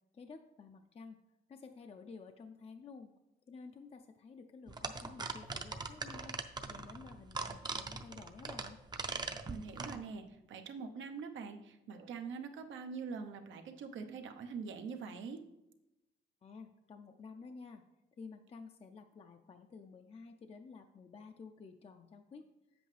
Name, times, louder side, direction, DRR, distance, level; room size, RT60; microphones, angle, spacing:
voice 1, 0.1-1.2 1.5-3.1 3.5-6.3 6.7-8.8 16.4-17.8 18.2-22.4, left 4 dB, 30° left, 6 dB, 0.4 m, -52 dB
sound 1, 4.7-10.0, right 4 dB, 20° right, 0.5 m, -41 dB
voice 2, 9.5-15.4, right 5 dB, 85° right, 6 dB, 0.8 m, -44 dB
8.5 x 7.8 x 3.3 m, 0.93 s
cardioid pair, 125°, 19 cm